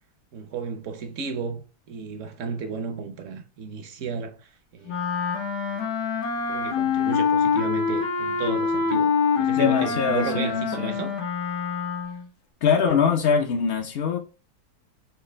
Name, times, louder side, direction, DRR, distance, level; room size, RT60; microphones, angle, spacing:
voice 1, 0.3-5.0 5.7-6.0 6.5-9.1 9.4-11.2, right 5 dB, 65° right, 0.8 m, -33 dB
Wind instrument woodwind instrument, 4.9-12.3, left 6 dB, 90° left, 1.5 m, -25 dB
voice 2, 9.6-11.0 12.6-14.2, left 6 dB, 75° left, 0.5 m, -23 dB
5.7 x 2.4 x 3.2 m
omnidirectional pair, 1.7 m